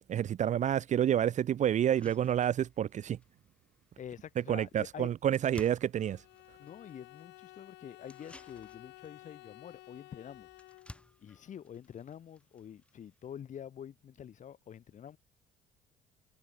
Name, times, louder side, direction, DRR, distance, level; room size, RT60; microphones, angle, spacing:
voice 1, 0.1-3.2 4.5-6.2, right 10 dB, 45° right, 0.6 m, -29 dB
sound 1, 1.7-13.4, left 1 dB, 5° left, 5.4 m, -57 dB
voice 2, 4.0-5.1 6.6-10.5 11.2-15.2, left 9 dB, 50° left, 2.5 m, -47 dB
Bowed string instrument, 6.0-11.2, left 19 dB, 90° left, 4.1 m, -54 dB
cardioid pair, 110°, 17 cm